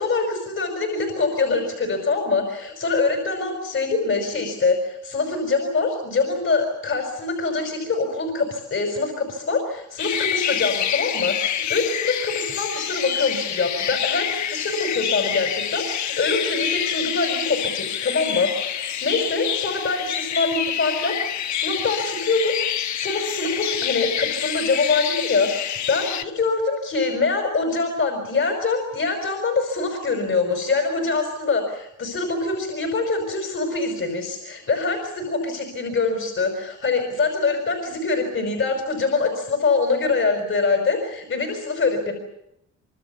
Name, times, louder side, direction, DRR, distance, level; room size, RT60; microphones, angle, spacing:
voice 1, 0.0-42.1, left 3 dB, 45° left, 4 dB, 5.8 m, -24 dB
sound 1, 10.0-26.2, left 10 dB, 70° left, 1.2 m, -27 dB
25.5 x 25.0 x 7.1 m, 0.82 s
cardioid pair, 90°, 30 cm